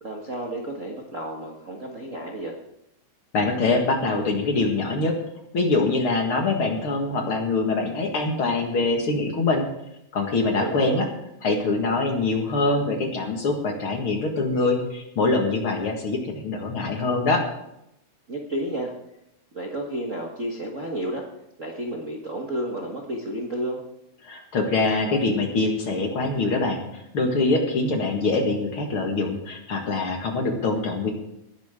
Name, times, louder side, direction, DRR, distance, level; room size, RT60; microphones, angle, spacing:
voice 1, 0.0-2.6 10.6-11.1 18.3-18.9 19.5-21.2 21.6-23.8, right 1 dB, 35° right, -1 dB, 1.3 m, -31 dB
voice 2, 3.3-5.1 5.5-9.6 10.1-11.0 11.4-17.4 24.2-31.1, left 3 dB, 50° left, 2 dB, 2.5 m, -24 dB
19.0 x 11.5 x 3.8 m, 0.81 s
omnidirectional pair, 3.4 m